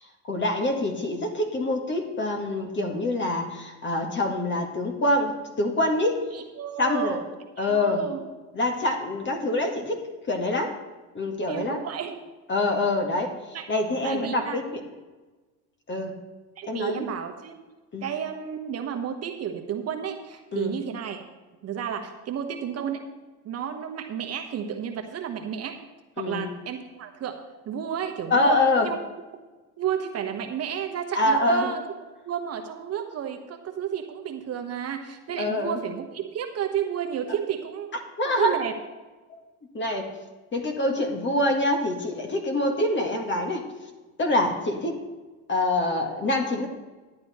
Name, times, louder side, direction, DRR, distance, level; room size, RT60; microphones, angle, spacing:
voice 1, 0.3-6.2 6.8-7.2 7.6-8.0 8.5-10.8 11.1-11.8 12.5-13.3 13.7-14.8 15.9-16.2 16.7-17.0 17.9-18.1 20.5-20.8 26.2-26.5 28.3-28.9 31.1-31.7 35.4-35.8 38.2-38.6 39.7-40.1 40.5-43.6 44.2-45.0 45.5-46.7, left 1 dB, 30° left, 3 dB, 1.8 m, -25 dB
voice 2, 6.3-7.2 7.6-8.2 11.5-12.1 13.5-13.6 14.0-14.6 16.6-17.6 18.0-21.2 21.6-23.0 23.4-25.8 26.2-27.4 27.6-29.0 29.8-31.8 32.2-37.9 38.2-38.7, right 8 dB, 45° right, 5 dB, 1.1 m, -31 dB
11.0 x 9.2 x 4.3 m, 1.2 s
supercardioid pair, 105°, 36 cm